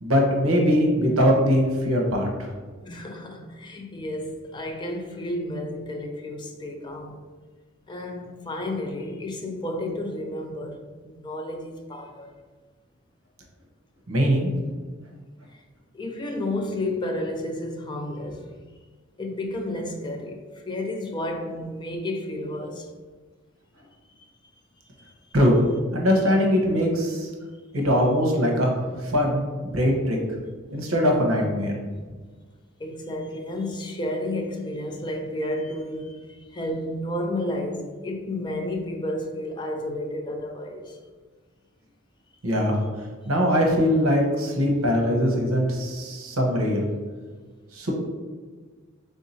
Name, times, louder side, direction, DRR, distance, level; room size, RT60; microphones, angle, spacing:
voice 1, 0.0-2.3 14.1-14.5 25.3-25.6 25.9-27.3 27.7-30.2 30.7-31.8 42.4-42.8 43.3-46.8 47.7-47.9, equal, 80° right, 0.9 m, -21 dB
voice 2, 2.8-7.3 7.9-12.3 15.9-18.6 19.2-22.9 24.2-24.3 30.8-30.9 32.8-41.0, left 1 dB, 20° left, 0.4 m, -31 dB
3.4 x 2.7 x 4.2 m
head